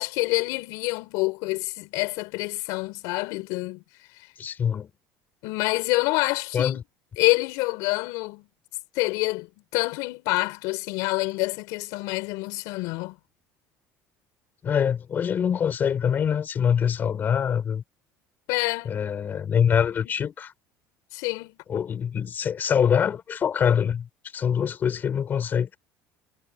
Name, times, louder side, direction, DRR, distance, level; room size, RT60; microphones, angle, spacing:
voice 1, 0.0-3.8 5.4-6.8 7.2-8.5 9.0-9.5 9.7-13.2 18.5-18.9 21.1-21.6, left 24 dB, 75° left, 5.6 m, -27 dB
voice 2, 4.4-4.9 6.5-6.8 14.6-17.8 18.8-20.5 21.7-24.1 24.3-25.8, left 8 dB, 30° left, 4.8 m, -24 dB
cardioid pair, 145°, 6 cm